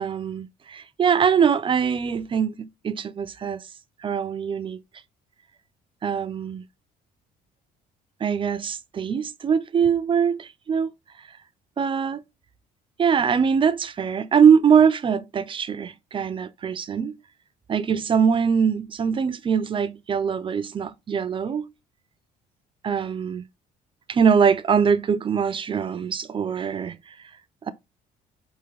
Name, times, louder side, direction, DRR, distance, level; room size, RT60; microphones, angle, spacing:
voice 1, 0.0-3.7 4.0-4.8 6.0-6.6 8.2-10.9 11.8-12.2 13.0-17.2 17.7-21.7 22.8-23.4 24.1-27.1, right 7 dB, 30° right, 0.4 m, -22 dB
4.4 x 3.5 x 3.2 m
cardioid pair, 110°, 17 cm